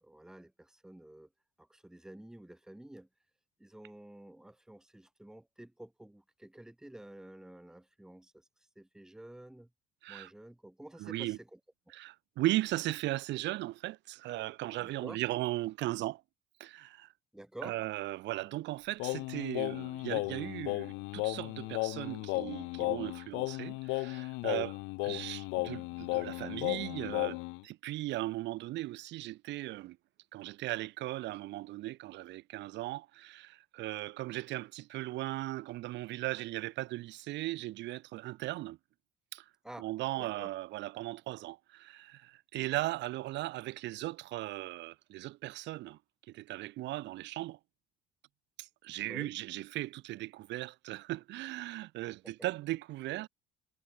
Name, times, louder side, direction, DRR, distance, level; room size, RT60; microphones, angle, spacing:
voice 1, 0.0-1.3 1.6-3.1 3.6-8.5 8.8-9.7 10.1-11.6 11.9-12.0 14.8-15.2 17.3-17.8 24.5-24.6 39.6-39.9 40.2-40.5 49.1-49.3 52.2-52.3, right 1 dB, 5° right, 0.9 m, -50 dB
voice 2, 11.0-11.4 11.9-16.2 16.6-17.1 17.6-24.8 25.0-30.0 30.3-38.8 39.3-39.5 39.8-46.0 46.3-47.6 48.6-53.3, right 17 dB, 65° right, 0.6 m, -37 dB
Singing, 19.0-27.6, left 27 dB, 80° left, 0.6 m, -35 dB
supercardioid pair, 100°, 20 cm